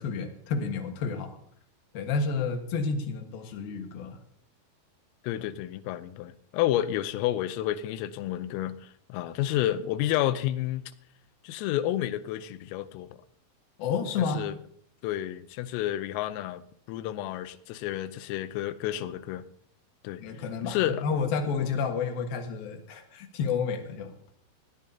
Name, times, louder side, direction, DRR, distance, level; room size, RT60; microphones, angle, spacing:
voice 1, 0.0-1.4 1.9-4.2 13.8-14.4 20.2-24.1, left 5 dB, 60° left, 2.7 m, -30 dB
voice 2, 5.2-10.8 11.4-13.2 14.3-14.6 15.0-19.4 20.0-20.2 20.6-21.1, left 13 dB, 90° left, 3.4 m, -30 dB
19.0 x 17.0 x 2.8 m
omnidirectional pair, 5.9 m